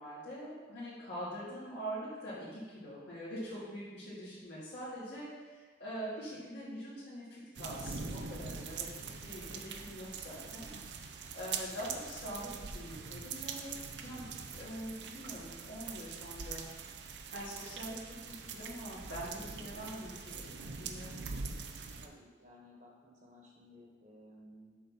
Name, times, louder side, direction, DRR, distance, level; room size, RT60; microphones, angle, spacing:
voice 1, 0.0-10.7 11.3-13.7 14.0-14.3 14.5-16.7 17.3-20.5 20.8-21.5, equal, 70° left, -10 dB, 2.3 m, -44 dB
sound 1, 7.5-22.1, right 5 dB, 75° right, 0.6 m, -43 dB
voice 2, 22.0-24.8, left 1 dB, 45° right, -2 dB, 1.4 m, -57 dB
7.4 x 4.1 x 5.8 m, 1.3 s
head